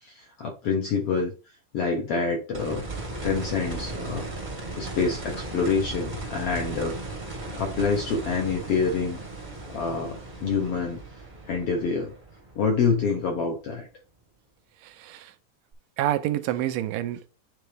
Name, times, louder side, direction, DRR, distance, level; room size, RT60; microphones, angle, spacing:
voice 1, 0.0-1.3 1.7-2.9 3.2-4.3 4.7-7.0 7.6-9.2 9.7-11.0 11.5-12.1 12.5-13.9, left 5 dB, 70° left, 1.4 m, -26 dB
sound 1, 2.5-13.4 15.7-15.8, right 2 dB, 40° right, 0.6 m, -37 dB
voice 2, 14.8-15.3 16.0-17.3, right 13 dB, 90° right, 2.3 m, -28 dB
9.4 x 3.9 x 3.5 m
omnidirectional pair, 3.8 m